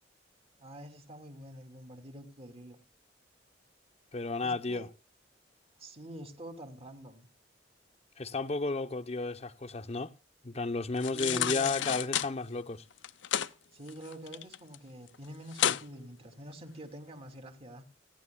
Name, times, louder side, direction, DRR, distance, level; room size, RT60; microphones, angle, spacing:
voice 1, 0.6-2.8 4.4-4.9 5.8-7.3 11.1-11.9 13.7-17.9, right 1 dB, 35° right, 2.9 m, -46 dB
voice 2, 4.1-4.9 8.2-10.1 10.4-12.8, left 3 dB, 35° left, 0.8 m, -33 dB
sound 1, 11.0-12.3 13.0-13.5 13.9-14.8 15.1-15.2 15.5-15.8 16.3-16.4, left 10 dB, 90° left, 0.7 m, -31 dB
30.0 x 11.0 x 2.3 m
head